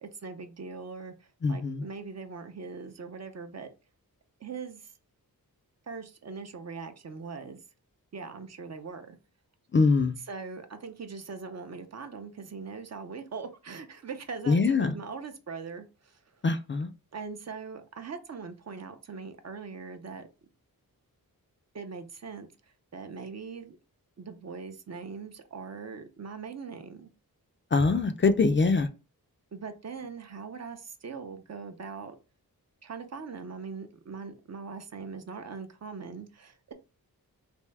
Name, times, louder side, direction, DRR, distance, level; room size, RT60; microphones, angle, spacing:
voice 1, 0.0-1.1 1.5-3.7 4.4-4.8 5.9-7.6 8.1-9.2 10.3-15.8 17.1-20.3 21.7-22.5 22.9-23.8 24.2-27.1 29.5-32.1 32.8-36.7, right 5 dB, 45° right, 0.5 m, -41 dB
voice 2, 1.4-1.8 9.7-10.2 14.5-14.9 16.4-16.9 27.7-28.9, left 4 dB, 35° left, 0.4 m, -23 dB
3.4 x 2.6 x 3.2 m
wide cardioid pair, 100°, 37 cm